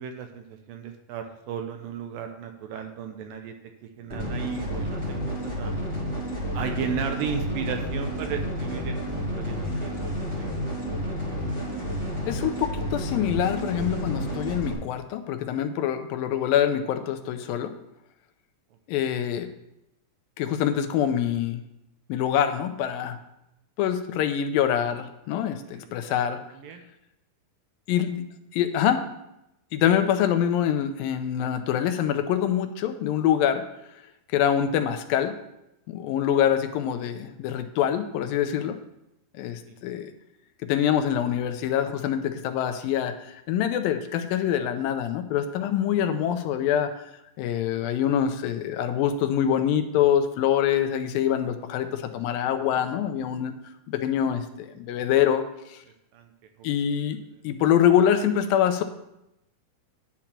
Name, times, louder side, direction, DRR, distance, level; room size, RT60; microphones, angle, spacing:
voice 1, 0.0-3.6 4.0-5.7 6.5-9.0 9.3-10.0 10.3-10.5 25.7-26.2 26.5-26.8 56.1-56.3, right 6 dB, 75° right, 5 dB, 2.4 m, -35 dB
sound 1, 4.1-14.7, equal, 10° right, 1.4 m, -30 dB
voice 2, 12.3-17.7 18.9-19.5 20.4-21.6 22.1-23.2 23.8-26.4 27.9-28.3 28.5-29.0 29.7-33.6 34.3-35.3 35.9-38.8 39.4-40.1 40.6-43.1 43.5-46.9 47.4-53.5 53.9-55.4 55.7-55.8 56.6-57.2 57.4-58.8, left 9 dB, 85° left, 8 dB, 2.5 m, -25 dB
10.0 x 4.6 x 7.3 m, 0.86 s
omnidirectional pair, 4.1 m